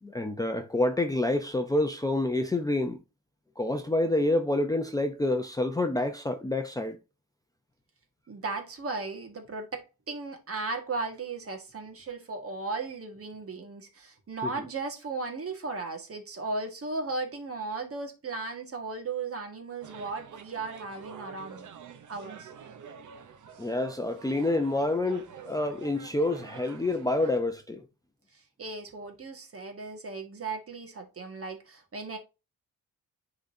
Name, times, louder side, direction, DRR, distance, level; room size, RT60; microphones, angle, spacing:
voice 1, 0.0-3.0 3.6-7.0 14.4-14.5 23.6-27.9, left 2 dB, 10° left, 0.7 m, -28 dB
voice 2, 8.3-21.7 22.1-22.5 28.3-32.2, right 3 dB, 40° right, 1.9 m, -36 dB
sound 1, 19.8-27.4, right 7 dB, 55° right, 0.9 m, -47 dB
10.0 x 4.0 x 2.8 m
wide cardioid pair, 145°, 35 cm